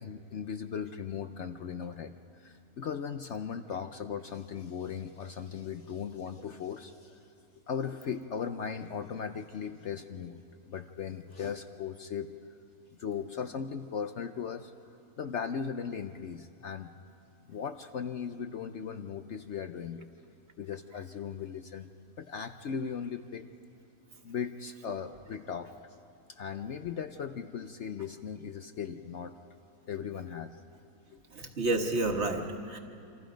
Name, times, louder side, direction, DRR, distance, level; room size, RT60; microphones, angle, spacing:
voice 1, 0.0-7.3 7.7-12.3 13.0-14.7 15.2-16.9 17.5-20.1 20.6-21.9 22.2-23.5 24.2-25.8 26.3-29.3 29.9-30.6 31.1-31.2, left 7 dB, 60° left, 8 dB, 0.9 m, -38 dB
voice 2, 31.3-32.8, right 2 dB, 45° right, 4 dB, 1.7 m, -30 dB
28.0 x 25.5 x 5.1 m, 2.6 s
omnidirectional pair, 1.6 m